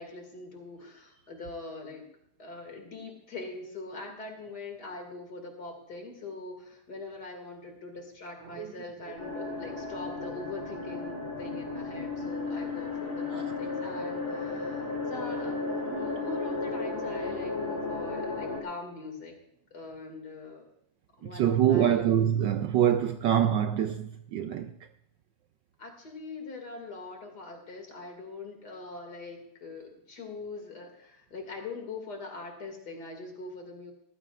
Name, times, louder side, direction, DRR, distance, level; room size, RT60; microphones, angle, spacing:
voice 1, 0.0-2.1 2.4-19.4 19.7-20.6 21.2-22.1 25.8-33.9, left 3 dB, 50° left, 2.8 m, -42 dB
sound 1, 9.2-18.6, left 3 dB, 30° left, 2.6 m, -34 dB
voice 2, 21.3-24.7, right 10 dB, 70° right, 1.1 m, -25 dB
19.5 x 14.5 x 2.4 m
omnidirectional pair, 2.4 m